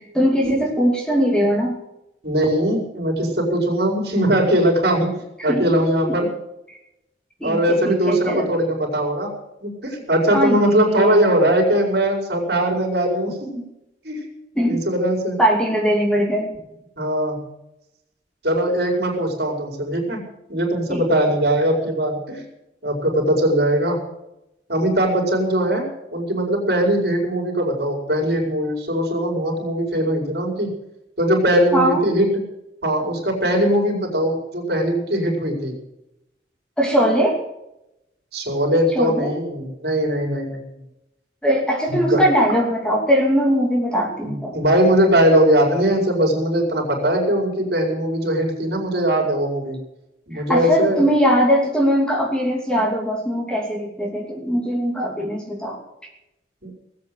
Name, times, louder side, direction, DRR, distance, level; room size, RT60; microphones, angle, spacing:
voice 1, 0.0-1.8 5.5-5.7 6.0-6.2 6.7-6.8 7.4-8.5 10.3-11.1 14.6-14.8 15.4-16.5 20.9-21.0 31.7-32.1 36.8-37.4 38.9-39.3 41.4-44.5 50.3-55.8, equal, 5° left, 0 dB, 2.7 m, -20 dB
voice 2, 2.2-6.3 7.4-9.3 9.6-13.6 14.0-14.2 14.7-15.4 17.0-17.4 18.4-22.4 22.8-24.0 24.7-30.7 31.2-32.4 32.8-35.8 38.3-40.8 41.9-42.2 44.2-49.8 50.3-51.0 56.6-56.7, right 1 dB, 60° right, 0 dB, 5.2 m, -20 dB
19.0 x 8.6 x 7.9 m, 0.89 s
head